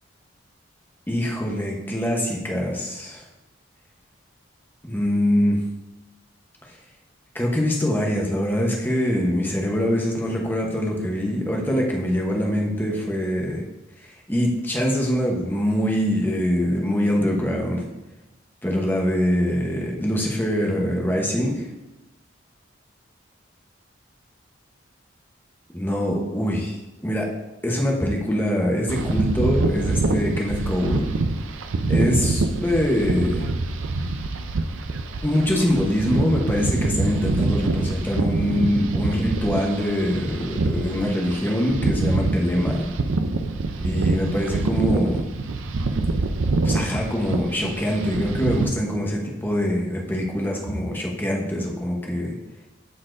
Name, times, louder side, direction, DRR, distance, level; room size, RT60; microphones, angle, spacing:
voice 1, 1.1-3.2 4.8-5.6 6.7-6.8 7.3-13.6 14.0-17.8 18.6-21.7 25.7-27.3 27.6-31.0 31.9-33.5 35.2-42.9 43.8-45.3 46.6-52.3, equal, 10° left, -1 dB, 0.9 m, -24 dB
sound 1, 28.9-48.7, right 3 dB, 85° right, 0.5 m, -25 dB
12.0 x 4.2 x 2.6 m, 1.0 s
head